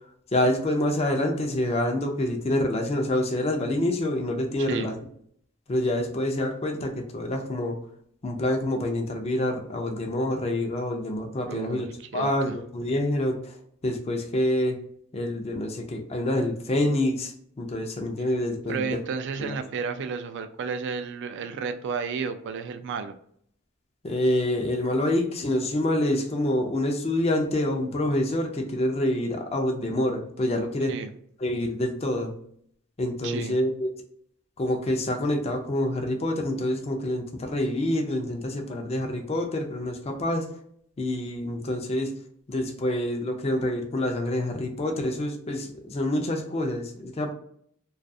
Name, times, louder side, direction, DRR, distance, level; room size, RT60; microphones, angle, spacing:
voice 1, 0.3-4.9 5.7-7.8 8.2-11.9 12.1-13.6 13.8-14.8 15.1-19.0 19.4-19.6 24.0-30.9 31.4-32.3 33.0-33.9 34.6-40.5 41.0-42.1 42.5-47.3, left 1 dB, 30° left, 3 dB, 0.4 m, -27 dB
voice 2, 4.6-4.9 11.5-12.6 18.7-23.1 30.9-31.1 33.2-33.6, right 5 dB, 55° right, 9 dB, 0.3 m, -32 dB
2.3 x 2.3 x 2.6 m, 0.66 s
head